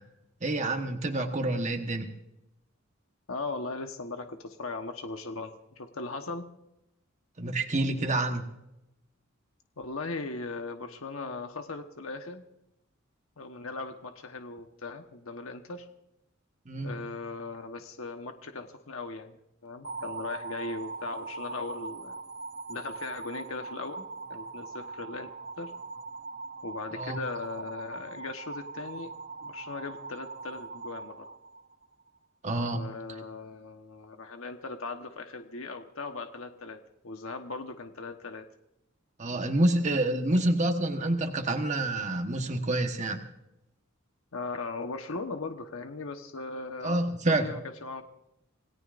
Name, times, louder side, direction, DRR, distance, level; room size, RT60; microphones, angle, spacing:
voice 1, 0.4-2.1 7.4-8.4 16.7-16.9 26.9-27.2 32.4-32.8 39.2-43.2 46.8-47.5, right 2 dB, 35° right, 4 dB, 1.3 m, -28 dB
voice 2, 3.3-6.5 9.8-12.4 13.4-15.9 16.8-19.4 19.6-22.2 22.7-25.3 25.6-25.7 26.6-29.1 29.4-31.3 32.7-36.8 37.0-38.4 39.7-40.0 44.3-47.0 47.4-48.0, left 3 dB, 90° left, 5 dB, 1.2 m, -38 dB
sound 1, 19.8-32.0, right 3 dB, 60° right, 1.8 m, -41 dB
27.5 x 18.0 x 2.6 m, 0.89 s
head